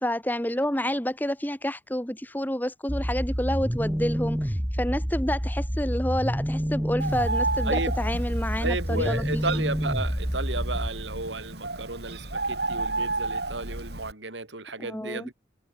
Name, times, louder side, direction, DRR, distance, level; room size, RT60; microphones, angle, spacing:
voice 1, 0.0-9.6 14.8-15.3, equal, 10° left, 2.7 m, -29 dB
sound 1, 2.9-10.9, equal, 5° right, 1.5 m, -28 dB
Bird, 7.0-14.1, right 3 dB, 65° right, 5.5 m, -32 dB
voice 2, 8.6-15.3, right 3 dB, 85° right, 4.9 m, -33 dB
head